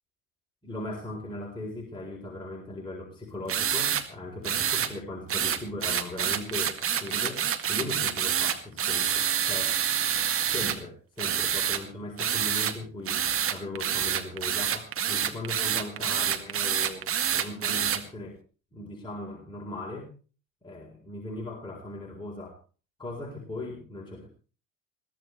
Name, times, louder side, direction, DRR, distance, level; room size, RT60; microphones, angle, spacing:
voice 1, 0.6-9.8 10.4-13.2 13.5-18.4 18.7-20.1 20.6-22.6 23.0-24.3, left 2 dB, 10° left, -1 dB, 4.1 m, -38 dB
sound 1, 3.5-4.0 4.4-4.9 5.3-10.8 11.2-11.8 12.2-12.7 13.1-18.0, right 9 dB, 35° right, 2.0 m, -27 dB
22.0 x 16.0 x 3.3 m, 0.37 s
figure-of-eight pair, 65°, 39 cm